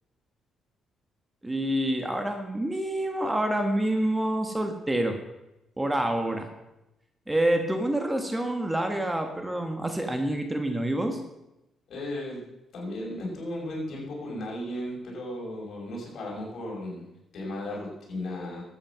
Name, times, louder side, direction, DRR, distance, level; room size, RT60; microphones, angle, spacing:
voice 1, 1.4-5.2 5.8-6.5 7.3-11.2, right 1 dB, 10° right, 6 dB, 1.5 m, -27 dB
voice 2, 11.9-12.4 12.7-17.1 17.3-18.6, left 1 dB, 60° left, -3 dB, 5.8 m, -35 dB
12.5 x 8.8 x 6.1 m, 0.92 s
cardioid pair, 90°, 0 cm